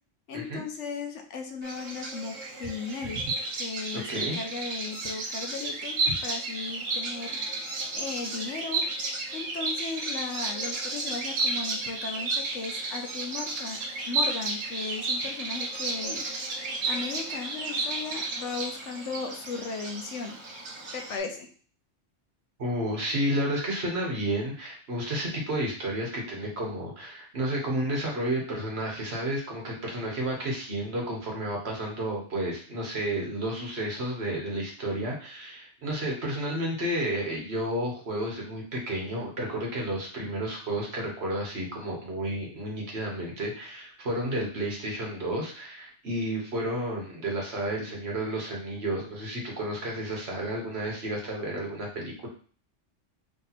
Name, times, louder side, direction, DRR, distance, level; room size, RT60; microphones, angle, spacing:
voice 1, 0.3-3.2 3.6-5.9 6.2-7.4 7.9-8.8 9.3-13.8 14.1-16.5 16.9-20.4 20.9-21.5, left 4 dB, 70° left, 4 dB, 0.9 m, -36 dB
Bird vocalization bird call bird song, 1.6-21.2, right 3 dB, 85° right, 1.3 m, -32 dB
voice 2, 3.9-4.4 22.6-52.3, right 1 dB, 55° right, -1 dB, 1.4 m, -31 dB
3.3 x 2.8 x 4.0 m, 0.42 s
omnidirectional pair, 1.3 m